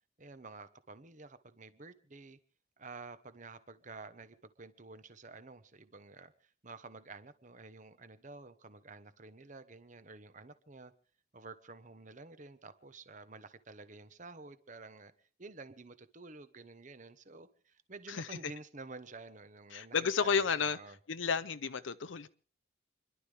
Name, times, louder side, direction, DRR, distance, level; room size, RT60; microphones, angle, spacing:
voice 1, 0.2-2.4 2.8-10.9 11.3-21.0, right 3 dB, 40° right, 1.1 m, -51 dB
voice 2, 18.1-18.4 19.7-20.8 21.1-22.3, left 6 dB, 75° left, 0.6 m, -32 dB
29.5 x 11.5 x 3.4 m
head